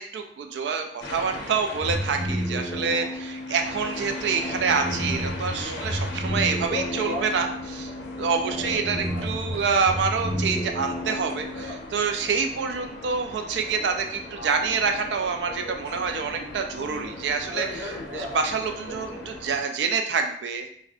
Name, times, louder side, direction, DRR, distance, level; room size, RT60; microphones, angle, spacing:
voice 1, 0.0-7.9 8.2-20.7, right 5 dB, 70° right, 5 dB, 0.3 m, -27 dB
sound 1, 1.0-19.6, left 2 dB, 75° left, 0.5 m, -38 dB
sound 2, 1.7-11.7, equal, 5° left, 0.5 m, -32 dB
2.4 x 2.1 x 3.5 m, 0.65 s
head